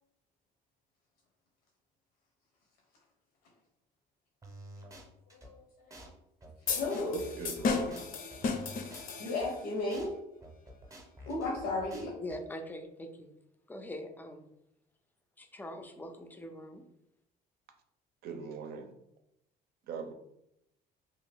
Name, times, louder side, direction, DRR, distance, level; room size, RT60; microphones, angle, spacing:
sound 1, 4.4-5.5 5.9-6.1 6.4-9.5 9.9-10.1 10.4-12.4, right 1 dB, 20° right, 0.7 m, -50 dB
voice 1, 5.4-6.0 6.7-7.3 9.2-10.2 11.3-12.1, left 2 dB, 85° left, 0.8 m, -34 dB
sound 2, 6.7-9.7, left 4 dB, 55° left, 0.6 m, -34 dB
voice 2, 7.4-8.1 18.2-18.9 19.9-20.1, right 5 dB, 65° right, 0.6 m, -40 dB
voice 3, 12.2-13.3 13.7-14.5 15.4-16.8, left 1 dB, 10° left, 0.4 m, -43 dB
2.8 x 2.4 x 3.3 m
cardioid pair, 110°, 17 cm